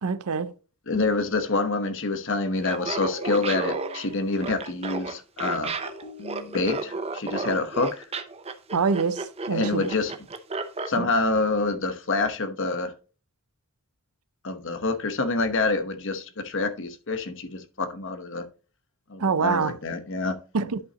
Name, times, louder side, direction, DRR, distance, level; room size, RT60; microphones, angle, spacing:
voice 1, 0.0-0.5 8.7-9.9 11.0-11.1 19.2-19.8 20.5-20.8, right 5 dB, 80° right, 0.6 m, -25 dB
voice 2, 0.9-5.7 6.5-8.1 9.5-10.1 10.9-12.9 14.4-18.4 19.1-20.4, left 3 dB, 60° left, 1.0 m, -27 dB
Laughter, 2.6-10.9, right 3 dB, 25° right, 0.6 m, -33 dB
sound 1, 2.8-4.5 5.5-7.2, equal, 85° left, 1.8 m, -42 dB
10.5 x 5.7 x 2.9 m
head